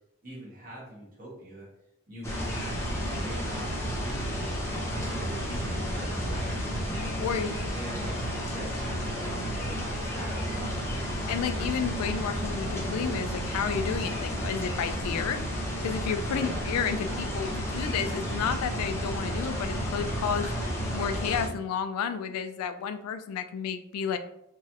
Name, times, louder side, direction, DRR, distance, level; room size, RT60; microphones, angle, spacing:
voice 1, 0.2-1.7 2.1-4.5 4.9-10.9 16.2-16.6, right 1 dB, 40° right, -7 dB, 1.0 m, -43 dB
sound 1, 2.2-21.5, equal, 10° left, 0.6 m, -32 dB
voice 2, 7.2-7.6 11.3-15.4 15.8-20.5 20.9-24.2, left 7 dB, 90° left, 14 dB, 0.3 m, -31 dB
3.0 x 2.4 x 2.7 m, 0.80 s
head